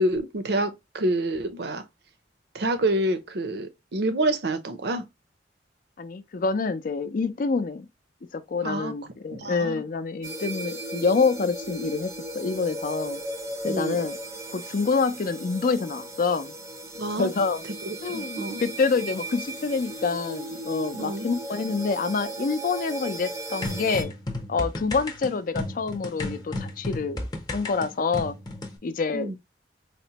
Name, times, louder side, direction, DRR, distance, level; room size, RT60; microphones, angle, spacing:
voice 1, 0.0-1.8 2.5-5.0 8.6-8.9 9.3-9.8 13.6-14.0 16.9-17.3 17.8-18.6 20.9-21.3 29.1-29.4, right 1 dB, 65° right, 0.6 m, -27 dB
voice 2, 6.0-7.9 8.3-13.2 13.6-14.2 14.5-16.5 17.2-17.6 18.0-24.1 24.5-27.2 27.5-28.4 28.8-29.4, left 4 dB, 50° left, 0.4 m, -27 dB
sound 1, 10.2-24.0, right 1 dB, 20° right, 0.5 m, -36 dB
sound 2, 23.6-28.8, left 2 dB, 25° left, 0.7 m, -33 dB
4.2 x 2.1 x 2.8 m
head